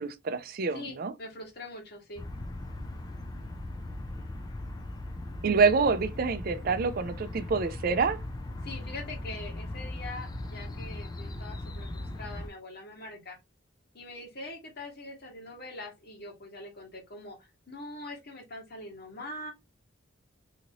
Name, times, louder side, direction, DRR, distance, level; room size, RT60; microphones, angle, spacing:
voice 1, 0.0-1.1 5.4-8.2, right 5 dB, 50° right, 0.4 m, -27 dB
voice 2, 0.7-2.2 8.6-13.4 13.9-19.5, left 2 dB, 55° left, 1.4 m, -43 dB
sound 1, 2.2-12.5, left 1 dB, 20° left, 0.3 m, -39 dB
2.8 x 2.6 x 2.8 m
head